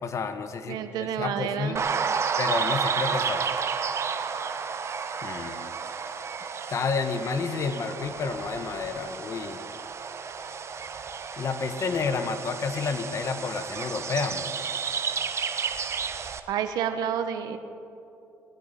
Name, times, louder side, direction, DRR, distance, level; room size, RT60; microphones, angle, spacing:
voice 1, 0.0-1.8 2.4-3.5 5.2-5.6 6.7-9.6 11.4-14.5, left 5 dB, 50° left, 8 dB, 1.1 m, -30 dB
voice 2, 0.7-1.8 16.5-17.6, right 9 dB, 80° right, 9 dB, 0.9 m, -29 dB
sound 1, 1.8-16.4, right 6 dB, 45° right, 0.9 m, -31 dB
19.5 x 10.5 x 4.1 m, 2.7 s
cardioid pair, 85°, 7 cm